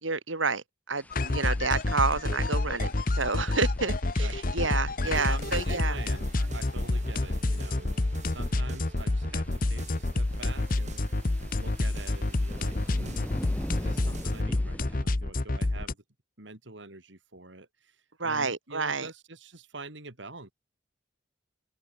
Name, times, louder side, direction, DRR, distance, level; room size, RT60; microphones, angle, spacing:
voice 1, 0.0-6.0 18.2-19.1, right 4 dB, 90° right, 3.7 m, -30 dB
sound 1, 1.0-15.0, equal, 10° left, 1.9 m, -46 dB
sound 2, 1.1-15.9, left 2 dB, 45° left, 0.9 m, -28 dB
voice 2, 4.2-4.6 5.0-8.0 8.3-11.0 11.6-13.3 13.8-16.0 16.4-20.5, right 3 dB, 70° right, 3.0 m, -45 dB
sound 3, 5.0-14.4, right 1 dB, 40° right, 2.7 m, -45 dB
open air
head